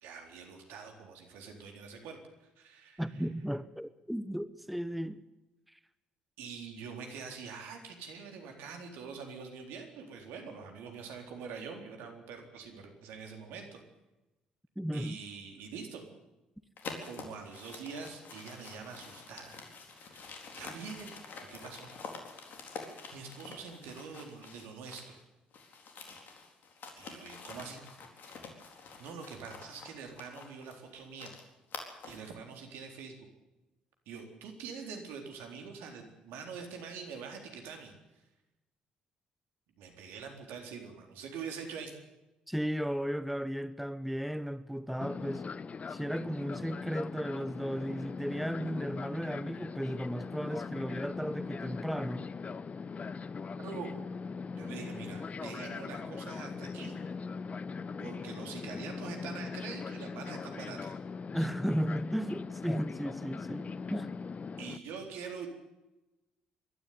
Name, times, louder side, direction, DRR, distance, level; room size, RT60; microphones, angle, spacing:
voice 1, 0.0-3.0 6.4-13.8 14.9-16.0 17.0-19.6 19.9-21.2 21.5-21.9 23.1-25.0 26.9-27.8 28.6-31.4 32.0-33.3 34.1-37.9 39.8-41.9 53.6-53.9 54.6-57.0 58.0-61.0 64.6-65.5, right 5 dB, 70° right, 3.9 m, -45 dB
voice 2, 3.0-5.2 5.7-5.8 14.8-15.2 42.5-45.5 45.9-52.3 61.3-64.1, equal, ahead, 1.1 m, -35 dB
sound 1, 16.8-25.2 25.5-32.3, left 4 dB, 55° left, 4.1 m, -47 dB
Fixed-wing aircraft airplane, 45.0-64.8, left 5 dB, 35° left, 0.9 m, -40 dB
22.0 x 12.5 x 9.6 m
hypercardioid pair, 50°, 4 cm